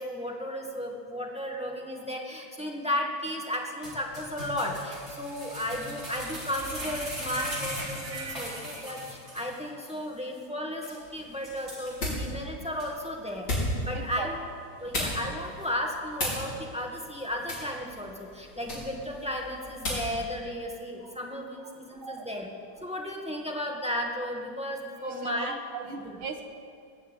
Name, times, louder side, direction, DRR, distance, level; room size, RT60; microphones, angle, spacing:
voice 1, 0.0-9.0 9.3-14.4 14.8-22.5 22.8-25.6 26.0-26.2, left 1 dB, 5° right, -1 dB, 1.7 m, -34 dB
sound 1, 3.8-9.6 9.9-10.0 10.4-10.5 10.8-11.0 11.4-12.3 12.8-12.9, equal, 30° right, 4.6 m, -39 dB
voice 2, 8.0-8.8 13.9-14.3 21.3-21.4 22.0-22.3 25.0-26.4, right 6 dB, 75° right, 4 dB, 2.2 m, -38 dB
sound 2, 11.0-20.2, left 1 dB, 70° left, 6.4 m, -36 dB
19.5 x 7.4 x 9.9 m, 2.2 s
omnidirectional pair, 2.3 m